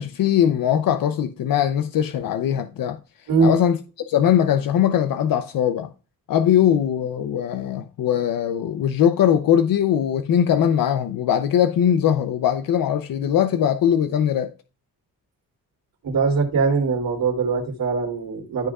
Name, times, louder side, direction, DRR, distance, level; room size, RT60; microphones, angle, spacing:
voice 1, 0.0-3.0 3.4-3.8 4.1-5.9 6.3-14.5, left 9 dB, 80° left, 0.7 m, -20 dB
voice 2, 16.0-18.7, right 4 dB, 80° right, 3.1 m, -21 dB
13.5 x 5.3 x 2.4 m
cardioid pair, 95°, 34 cm